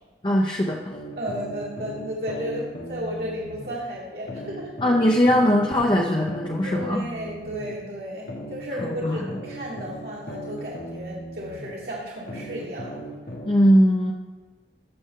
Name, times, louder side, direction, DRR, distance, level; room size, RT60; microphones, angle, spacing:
voice 1, 0.2-0.9 4.8-7.0 9.0-9.3 13.4-14.1, equal, 25° left, -1 dB, 0.6 m, -20 dB
sound 1, 0.9-3.8 4.3-7.8 8.3-11.8 12.3-13.5, right 1 dB, 60° left, 1.4 m, -37 dB
voice 2, 1.1-4.9 6.6-13.0, equal, 60° right, -4 dB, 1.5 m, -33 dB
14.5 x 6.7 x 3.7 m, 1.3 s
head